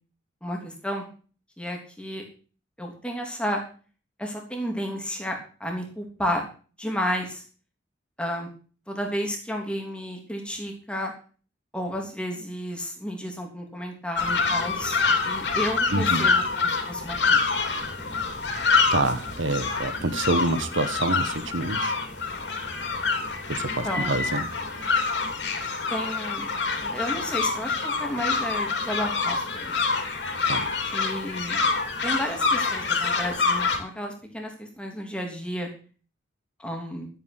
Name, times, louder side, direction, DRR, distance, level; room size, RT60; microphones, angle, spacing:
voice 1, 0.4-1.1 1.6-2.2 2.8-3.6 4.2-6.4 6.8-7.4 8.2-8.5 8.9-11.1 11.7-15.0 15.2-17.4 23.6-24.1 25.9-26.5 26.8-29.8 30.9-31.7 32.0-35.7 36.6-37.1, equal, 5° left, 1 dB, 3.1 m, -32 dB
sound 1, 14.1-33.8, left 4 dB, 65° left, 3.4 m, -26 dB
voice 2, 15.9-16.3 18.9-22.0 23.5-24.5 24.8-24.9 30.4-30.7, right 2 dB, 85° right, 12 dB, 1.6 m, -27 dB
13.5 x 8.9 x 6.2 m, 0.39 s
head